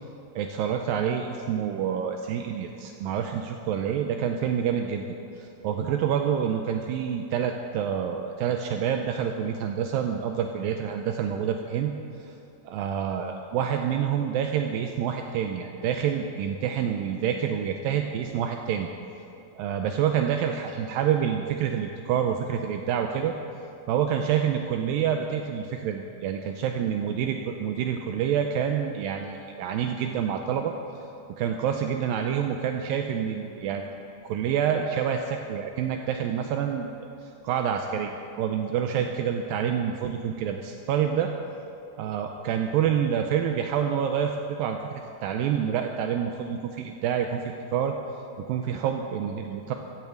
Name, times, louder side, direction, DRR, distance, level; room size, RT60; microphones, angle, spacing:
voice 1, 0.4-11.9 12.2-12.3 12.7-18.9 19.6-23.3 23.9-30.7 31.4-33.9 34.2-41.3 42.0-44.8 45.2-47.9 48.4-49.7, right 8 dB, 85° right, 4 dB, 2.1 m, -27 dB
15.0 x 9.0 x 7.7 m, 2.8 s
omnidirectional pair, 4.7 m